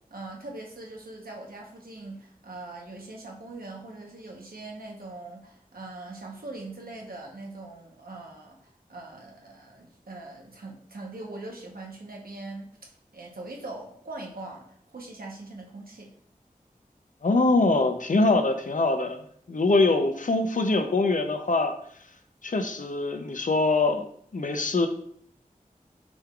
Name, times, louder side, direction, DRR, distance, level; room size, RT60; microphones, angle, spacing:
voice 1, 0.1-16.1, right 2 dB, 85° right, 0 dB, 1.0 m, -42 dB
voice 2, 17.2-19.2 19.5-21.7 22.4-24.9, left 3 dB, 60° left, 6 dB, 0.6 m, -23 dB
6.1 x 3.7 x 2.4 m, 0.63 s
wide cardioid pair, 55°, 15 cm